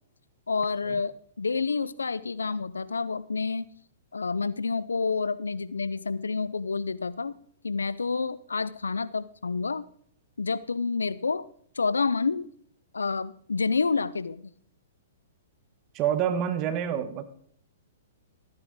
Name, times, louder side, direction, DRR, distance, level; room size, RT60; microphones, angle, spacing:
voice 1, 0.5-3.7 4.1-7.3 7.6-9.8 10.4-11.4 11.8-12.5 12.9-14.5, left 4 dB, 90° left, 0.6 m, -29 dB
voice 2, 15.9-17.2, right 9 dB, 35° right, 1.3 m, -27 dB
14.0 x 9.5 x 4.0 m
hypercardioid pair, 120°, 0 cm